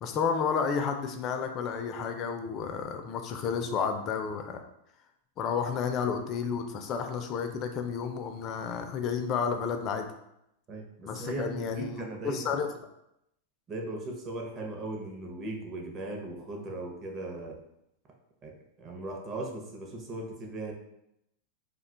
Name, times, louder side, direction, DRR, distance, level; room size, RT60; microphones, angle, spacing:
voice 1, 0.0-4.6 5.4-10.1 11.1-12.7, left 6 dB, 35° left, 6 dB, 0.4 m, -31 dB
voice 2, 10.7-12.4 13.7-17.6 18.4-20.7, right 2 dB, 25° right, 1 dB, 0.6 m, -38 dB
2.4 x 2.2 x 3.7 m, 0.82 s
supercardioid pair, 145°, 0 cm